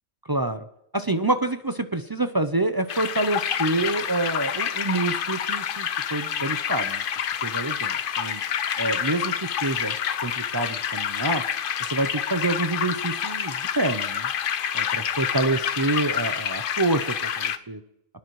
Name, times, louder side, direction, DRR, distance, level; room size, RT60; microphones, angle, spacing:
voice 1, 0.3-0.6 0.9-7.0 7.4-8.4 8.8-9.9 10.2-11.4 11.9-14.3 14.7-17.8, right 2 dB, 35° right, 9 dB, 0.3 m, -27 dB
sound 1, 2.9-17.6, left 8 dB, 55° left, 0.7 m, -28 dB
23.0 x 10.5 x 3.1 m, 0.82 s
omnidirectional pair, 1.3 m